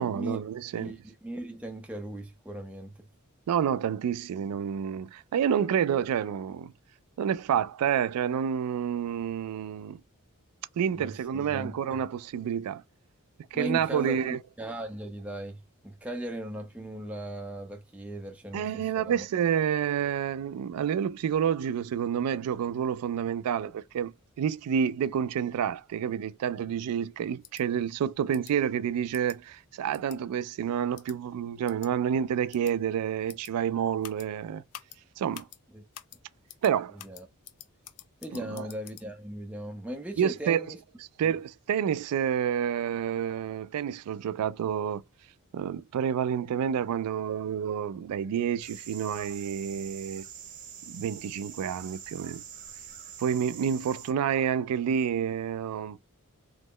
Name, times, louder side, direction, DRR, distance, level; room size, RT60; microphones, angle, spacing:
voice 1, 0.0-1.0 3.5-6.7 7.2-10.0 10.8-12.8 13.5-14.4 18.5-34.6 35.2-35.5 36.6-37.0 38.5-38.7 40.2-40.7 41.2-45.0 45.5-50.3 50.9-52.4 53.2-56.0, right 8 dB, 85° right, 0.3 m, -29 dB
voice 2, 0.8-2.9 10.9-11.8 13.5-19.2 35.7-35.8 37.0-37.3 38.2-40.8 41.2-41.4, right 1 dB, 5° right, 0.3 m, -38 dB
sound 1, 27.4-27.6 28.3-28.5 29.1-29.4 29.9-30.2 31.0-31.2 31.7-31.9 32.5-32.7 33.3-33.5 34.0-34.3 34.7-35.0 35.3-35.6 35.9-36.2 36.5-36.7 37.0-39.0, left 12 dB, 80° left, 0.4 m, -47 dB
sound 2, 48.6-54.1, right 8 dB, 35° right, 0.7 m, -45 dB
3.0 x 2.0 x 3.6 m
head